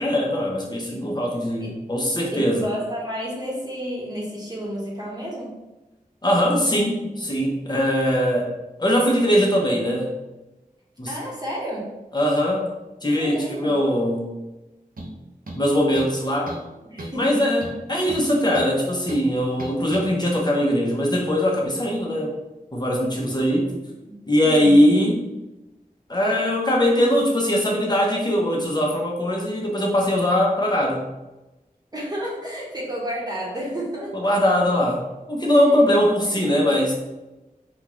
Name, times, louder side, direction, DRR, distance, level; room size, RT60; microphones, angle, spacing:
voice 1, 0.0-2.6 6.2-8.5 8.8-10.1 11.0-11.1 12.1-12.7 13.0-14.3 15.6-16.5 17.2-17.6 17.9-22.3 22.7-23.7 24.3-25.2 26.1-31.1 34.1-36.9, equal, 30° left, -2 dB, 0.8 m, -21 dB
voice 2, 2.3-5.6 11.1-11.9 13.2-13.8 16.9-17.6 23.1-24.8 31.9-34.6 35.7-36.5, equal, 25° right, -5 dB, 1.0 m, -32 dB
sound 1, 15.0-15.2 15.5-16.2 16.5-16.7 17.0-17.2 17.6-18.8 19.1-19.3 19.6-20.1, right 1 dB, 70° right, 0.7 m, -35 dB
3.6 x 2.4 x 3.0 m, 1.0 s
wide cardioid pair, 50°, 15 cm